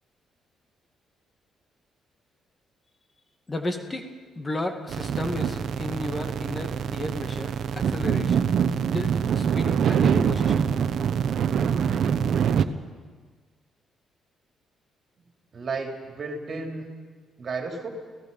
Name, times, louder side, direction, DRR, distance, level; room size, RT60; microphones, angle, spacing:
voice 1, 3.5-4.1 4.4-8.5 8.9-10.7, left 1 dB, 25° left, 5 dB, 2.0 m, -33 dB
sound 1, 4.9-12.6, right 7 dB, 65° right, 0.9 m, -24 dB
voice 2, 15.5-16.9 17.4-17.9, right 4 dB, 45° right, 2 dB, 3.2 m, -33 dB
29.5 x 16.5 x 5.5 m, 1.5 s
cardioid pair, 90°, 0 cm